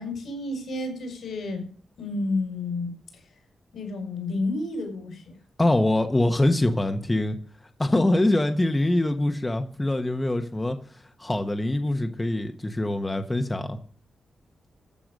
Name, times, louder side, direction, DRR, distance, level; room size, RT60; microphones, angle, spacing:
voice 1, 0.0-1.7 2.0-3.2 3.7-5.3, left 2 dB, 90° left, 4 dB, 5.7 m, -31 dB
voice 2, 5.6-7.4 7.8-10.8 11.2-13.8, left 1 dB, 15° left, 6 dB, 1.2 m, -24 dB
14.0 x 6.8 x 6.6 m, 0.43 s
wide cardioid pair, 155°, 0 cm